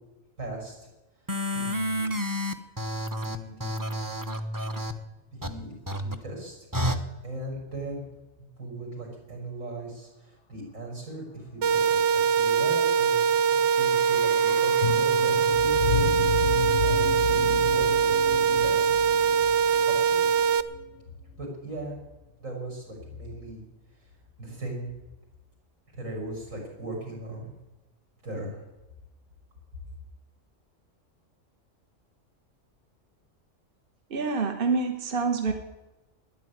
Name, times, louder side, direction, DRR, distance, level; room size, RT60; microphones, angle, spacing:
voice 1, 0.4-0.9 1.2-2.0 3.2-4.0 5.3-8.1 8.6-16.1 16.8-19.1 19.9-20.3 21.4-22.0 22.4-23.6 24.4-24.9 25.9-27.5 28.2-28.6, right 1 dB, 90° right, -1 dB, 6.3 m, -39 dB
sound 1, 1.3-4.9 5.4-5.5 5.9-6.1 6.7-7.0, equal, 15° right, 0.9 m, -30 dB
sound 2, 11.6-20.6, right 7 dB, 65° right, 1.0 m, -23 dB
sound 3, 13.1-21.2 21.5-21.6, left 9 dB, 55° left, 0.8 m, -33 dB
voice 2, 34.1-35.5, right 4 dB, 45° right, 5 dB, 1.4 m, -26 dB
13.0 x 9.9 x 9.5 m, 1.0 s
omnidirectional pair, 1.3 m